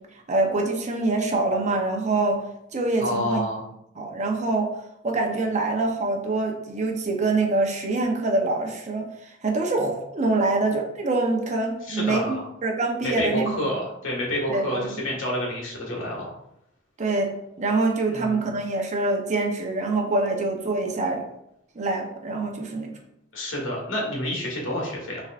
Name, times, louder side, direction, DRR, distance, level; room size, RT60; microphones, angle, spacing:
voice 1, 0.3-2.4 2.7-3.4 4.0-4.7 5.0-9.1 9.4-12.4 12.6-13.7 14.5-15.0 17.0-21.2 21.8-22.9, right 2 dB, 35° right, 2 dB, 0.7 m, -25 dB
voice 2, 3.0-3.6 11.9-12.4 13.0-16.3 18.1-18.5 23.3-25.2, left 1 dB, 75° left, -2 dB, 1.7 m, -28 dB
6.0 x 3.5 x 2.4 m, 0.79 s
head